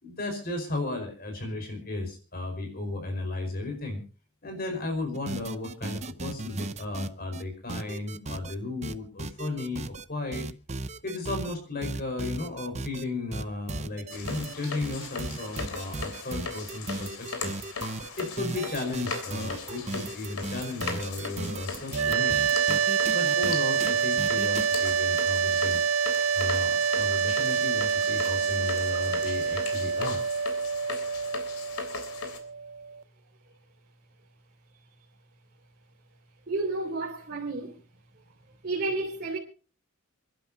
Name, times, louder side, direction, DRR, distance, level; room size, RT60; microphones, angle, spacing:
voice 1, 0.0-4.0 4.4-10.4 11.0-17.5 18.2-22.4 23.1-25.8 26.3-30.2, left 2 dB, 45° left, 4.9 m, -34 dB
sound 1, 5.1-7.4 7.7-8.5 8.8-10.0 10.3-11.5 11.8-13.0 13.3-23.5 23.8-23.9 24.2-24.7, right 2 dB, 30° right, 0.7 m, -36 dB
sound 2, 14.1-32.4, left 4 dB, 90° left, 3.4 m, -38 dB
sound 3, 21.9-33.0, right 6 dB, 75° right, 0.7 m, -27 dB
voice 2, 36.5-37.8 38.6-39.4, right 3 dB, 45° right, 3.2 m, -31 dB
29.0 x 11.5 x 2.8 m
head